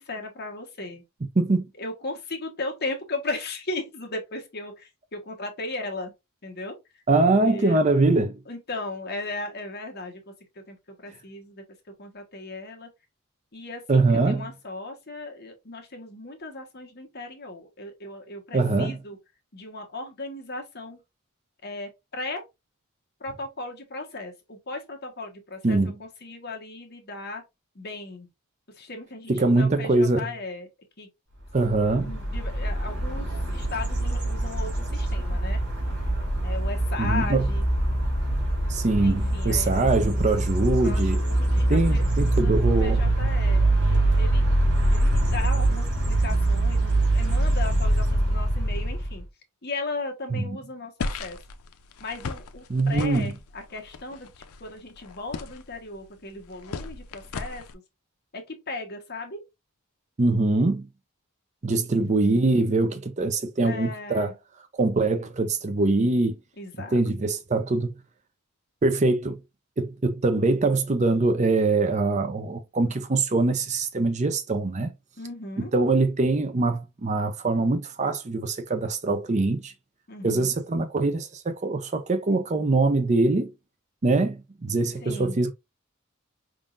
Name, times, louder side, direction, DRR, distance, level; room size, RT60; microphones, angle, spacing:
voice 1, 0.1-1.0 1.8-6.1 6.4-6.7 7.4-7.8 8.5-10.2 10.7-10.8 11.0-11.6 12.0-12.9 13.5-19.2 19.5-21.0 21.6-22.4 23.2-27.4 27.7-28.3 28.8-30.7 31.0-31.1 32.0-35.6 36.4-37.6 39.0-39.9 40.8-44.4 44.9-49.2 49.6-51.4 52.0-54.3 54.6-57.6 58.3-59.4 63.6-64.3 66.6-67.0 75.2-75.7 80.1-80.5 85.0-85.4, left 2 dB, 50° left, 1.3 m, -36 dB
voice 2, 7.1-8.4 13.9-14.4 18.5-19.0 25.6-26.0 29.3-30.3 31.5-32.1 37.0-37.5 38.7-41.2 41.7-43.0 50.3-50.6 52.7-53.3 60.2-60.9 61.6-64.3 64.8-66.3 66.9-67.9 68.8-69.4 69.8-74.9 75.6-79.7 80.2-83.5 84.0-84.4 84.6-85.5, right 3 dB, 35° right, 0.5 m, -23 dB
sound 1, 31.6-49.2, right 1 dB, 55° right, 2.5 m, -24 dB
sound 2, 51.0-57.7, left 4 dB, 85° left, 0.6 m, -37 dB
4.9 x 3.7 x 2.5 m
head